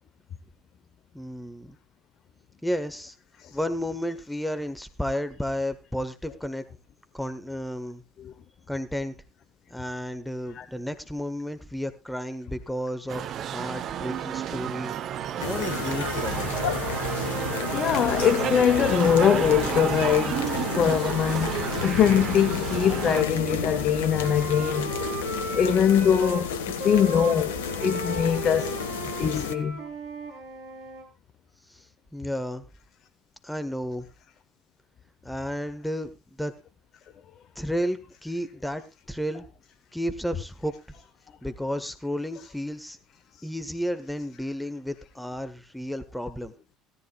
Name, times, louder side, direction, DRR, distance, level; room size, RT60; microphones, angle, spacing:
voice 1, 1.1-1.8 2.6-3.1 3.5-6.6 7.1-8.0 8.7-9.1 9.7-16.7 31.7-31.8 32.1-32.6 33.4-34.1 35.2-36.1 36.4-36.5 37.5-39.5 39.9-40.7 41.4-43.0 43.4-46.5, equal, 5° left, 1.4 m, -32 dB
sound 1, 13.1-23.2, right 9 dB, 45° right, 0.8 m, -31 dB
sound 2, 15.4-29.5, left 7 dB, 70° left, 1.1 m, -31 dB
voice 2, 17.7-20.5 20.8-24.9 25.5-26.5 26.8-28.8 29.2-29.8, left 8 dB, 45° left, 0.8 m, -22 dB
Wind instrument woodwind instrument, 22.8-26.4 26.8-31.1, right 2 dB, 65° right, 3.5 m, -36 dB
17.0 x 13.5 x 2.3 m
figure-of-eight pair, 60°, 0 cm